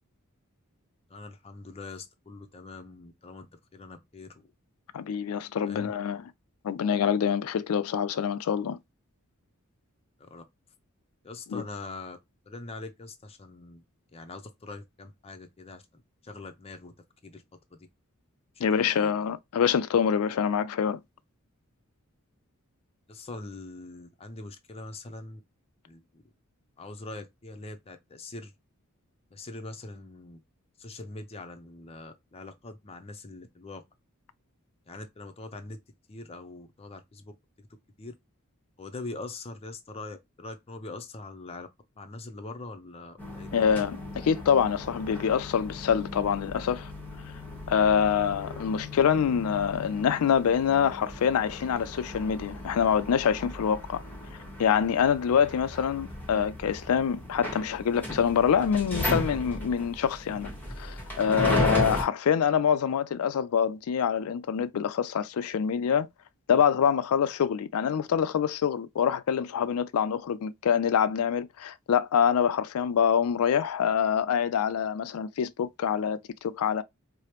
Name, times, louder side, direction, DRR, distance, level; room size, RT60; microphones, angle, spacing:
voice 1, 1.1-4.4 5.6-5.9 10.2-10.4 11.2-12.2 12.5-13.8 14.1-16.9 17.2-17.4 17.7-17.8 18.6-19.1 23.1-25.4 25.9-26.2 26.8-28.5 29.3-30.4 30.8-33.8 34.9-35.8 36.1-37.3 37.6-37.7 38.0-38.1 38.8-41.7 42.0-43.8, left 2 dB, 30° left, 0.5 m, -43 dB
voice 2, 4.9-6.2 6.6-8.8 11.5-11.6 18.6-21.0 43.5-46.9 47.7-54.0 54.6-60.5 60.8-66.1 66.5-76.8, left 7 dB, 80° left, 0.4 m, -25 dB
sound 1, 43.2-62.0, left 1 dB, 10° left, 1.0 m, -36 dB
4.8 x 2.0 x 2.9 m
head